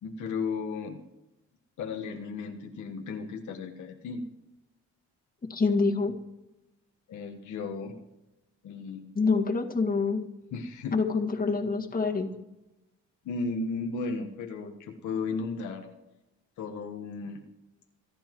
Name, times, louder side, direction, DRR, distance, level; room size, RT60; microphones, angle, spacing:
voice 1, 0.0-1.0 1.8-4.2 7.1-8.0 8.6-9.1 10.5-11.0 13.2-15.9 16.6-17.4, left 4 dB, 75° left, 2 dB, 1.4 m, -35 dB
voice 2, 5.5-6.2 9.2-10.3 10.9-12.3, left 4 dB, 30° left, 1 dB, 1.9 m, -26 dB
28.0 x 9.9 x 3.1 m, 0.97 s
cardioid pair, 90°, 30 cm